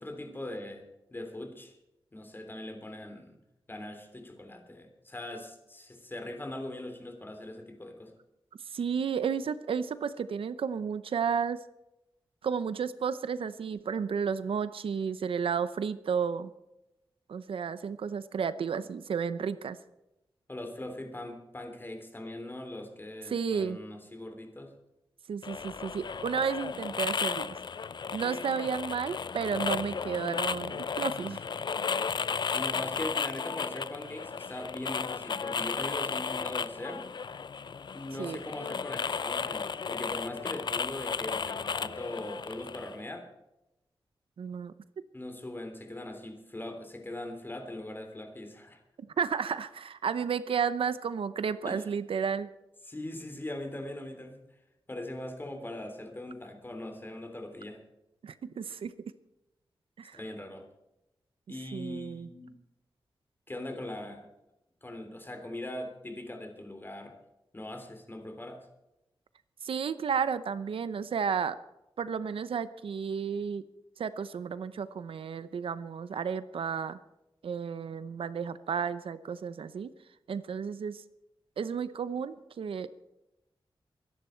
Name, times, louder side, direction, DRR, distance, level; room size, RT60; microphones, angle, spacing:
voice 1, 0.0-1.8 2.1-3.4 3.7-8.1 20.5-24.7 31.3-31.4 32.5-37.0 37.9-43.3 45.1-48.8 51.6-51.9 52.9-54.4 54.9-57.8 60.1-60.6 61.5-62.5 63.5-64.3 64.8-67.1 67.5-68.7, left 1 dB, 25° left, 5 dB, 3.2 m, -41 dB
voice 2, 8.7-11.6 12.4-16.5 17.3-19.8 23.3-23.8 25.3-27.6 28.1-31.4 38.2-38.4 44.4-44.7 49.0-52.5 58.2-58.9 60.0-60.2 61.7-62.3 69.6-71.6 72.0-73.6 74.0-77.0 77.4-79.9 80.3-81.0 81.6-82.9, right 6 dB, 85° right, 14 dB, 0.7 m, -32 dB
sound 1, 25.4-43.0, left 6 dB, 55° left, 0.5 m, -34 dB
23.5 x 11.0 x 4.5 m, 0.91 s
wide cardioid pair, 95°, 9 cm